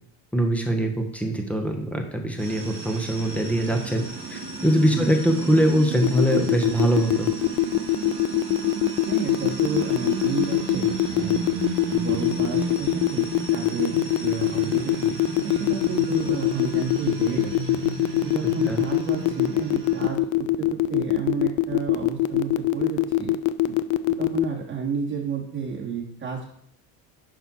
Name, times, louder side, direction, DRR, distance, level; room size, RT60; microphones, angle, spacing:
voice 1, 0.3-4.0 4.3-7.3 18.7-18.8, right 1 dB, 5° left, 3 dB, 1.5 m, -22 dB
sound 1, 2.4-20.1, right 3 dB, 55° right, 3.3 m, -34 dB
sound 2, 6.0-24.4, left 17 dB, 55° left, 0.6 m, -22 dB
voice 2, 9.0-11.4 11.9-15.2 15.4-17.8 18.2-20.2 20.6-23.3 24.2-26.5, right 5 dB, 30° right, -2 dB, 2.7 m, -31 dB
10.0 x 5.7 x 4.7 m, 0.71 s
cardioid pair, 120°, 38 cm